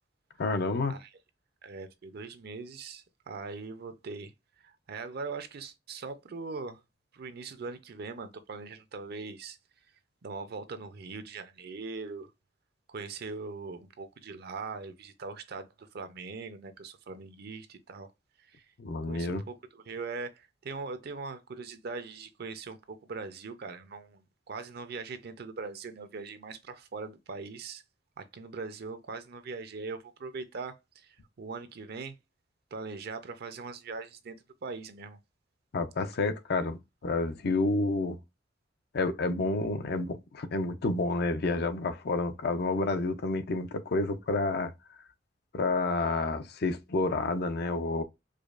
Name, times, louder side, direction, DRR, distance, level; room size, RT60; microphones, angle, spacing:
voice 1, 0.4-0.9 18.8-19.4 35.7-38.2 38.9-44.7 45.5-48.0, left 3 dB, 60° left, 0.5 m, -29 dB
voice 2, 1.6-4.3 4.6-6.8 7.1-9.6 10.2-12.3 12.9-18.1 18.5-18.7 19.1-27.8 28.2-32.2 32.7-34.4 34.6-35.2, right 4 dB, 60° right, 0.5 m, -41 dB
4.9 x 2.2 x 2.4 m
head